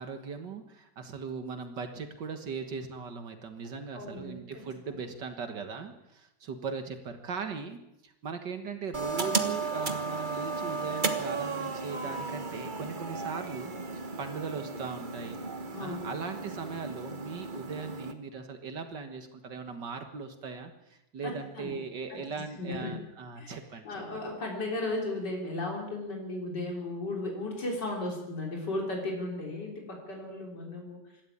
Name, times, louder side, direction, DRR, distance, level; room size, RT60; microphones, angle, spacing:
voice 1, 0.0-15.4 15.8-23.8, right 5 dB, 75° right, 7 dB, 2.2 m, -39 dB
voice 2, 3.9-4.6 15.7-16.0 21.2-21.7 22.1-22.2 22.6-23.0 23.4-23.6 23.8-31.0, left 2 dB, 70° left, 0 dB, 4.3 m, -35 dB
sound 1, 8.9-18.1, right 4 dB, 30° right, 1.4 m, -34 dB
26.0 x 12.5 x 8.6 m, 0.89 s
omnidirectional pair, 1.9 m